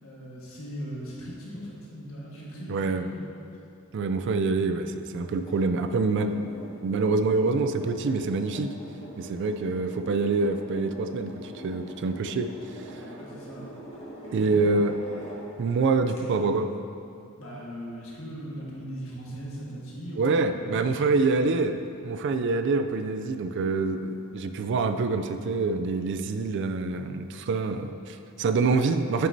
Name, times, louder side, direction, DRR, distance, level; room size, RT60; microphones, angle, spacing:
voice 1, 0.0-3.3 12.9-13.7 14.2-14.6 17.4-21.3, equal, 65° left, -5 dB, 1.5 m, -39 dB
voice 2, 2.7-3.0 3.9-8.7 9.2-12.5 14.3-14.9 15.6-16.7 20.2-21.8 22.0-29.3, right 3 dB, 55° right, 8 dB, 0.3 m, -26 dB
sound 1, 5.2-15.7 16.1-16.2, equal, 30° left, 1.4 m, -43 dB
9.2 x 6.0 x 2.7 m, 2.6 s
head